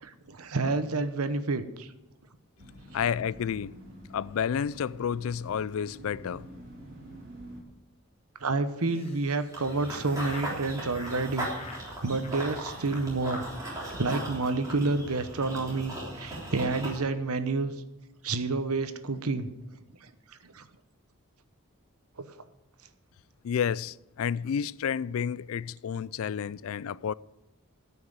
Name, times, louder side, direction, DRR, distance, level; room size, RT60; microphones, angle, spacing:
voice 1, 0.0-1.9 8.4-11.5 12.0-13.4 13.9-17.7 18.2-19.5 20.5-20.6 22.2-22.3, right 3 dB, 85° right, 1.0 m, -29 dB
sound 1, 2.6-7.6, equal, 40° right, 3.1 m, -48 dB
voice 2, 2.9-3.8 4.1-6.5 23.4-27.1, left 7 dB, 70° left, 0.3 m, -30 dB
Laughter, 8.8-10.6 10.9-11.2 11.5-11.9 12.2-12.6 12.9-13.0 13.3-13.4 13.7-13.8 14.0-14.2 14.5-14.8, left 3 dB, 25° left, 1.5 m, -48 dB
Run / Bird vocalization bird call bird song, 9.5-17.0, right 1 dB, 15° right, 3.4 m, -38 dB
13.5 x 5.8 x 9.2 m
head